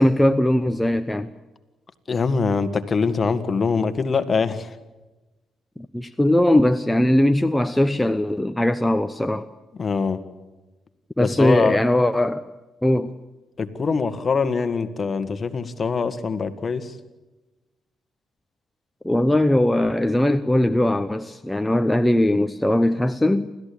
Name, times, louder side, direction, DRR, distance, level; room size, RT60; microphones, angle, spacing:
voice 1, 0.0-1.3 5.9-9.5 11.2-12.4 12.8-13.1 19.0-23.5, left 1 dB, 5° left, 0.9 m, -20 dB
voice 2, 2.1-4.8 9.8-10.2 11.2-11.8 13.6-16.9, left 5 dB, 40° left, 1.8 m, -23 dB
29.5 x 14.0 x 8.6 m
cardioid pair, 90°, 0 cm